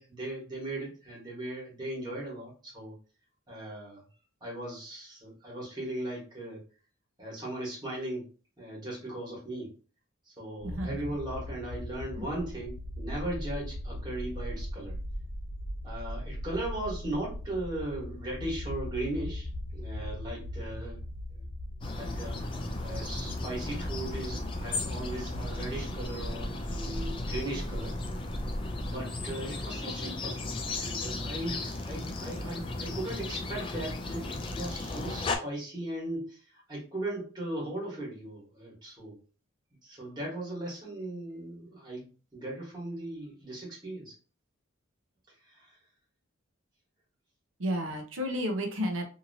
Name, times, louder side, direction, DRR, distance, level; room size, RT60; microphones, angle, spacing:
voice 1, 0.0-2.9 3.5-4.0 4.4-6.6 7.2-8.2 8.6-9.7 10.2-15.0 15.8-21.0 21.3-21.4 22.0-22.4 22.8-28.0 28.8-30.4 30.7-39.2 39.8-42.1 42.3-44.1 45.5-45.7, right 1 dB, 20° right, -5 dB, 1.3 m, -38 dB
sound 1, 10.6-29.0, left 1 dB, 55° left, 0.8 m, -39 dB
voice 2, 10.6-11.0 12.2-12.3 47.6-49.1, equal, 70° right, 4 dB, 0.7 m, -32 dB
sound 2, 21.8-35.4, left 2 dB, 25° left, 0.3 m, -36 dB
2.8 x 2.7 x 2.7 m, 0.36 s
head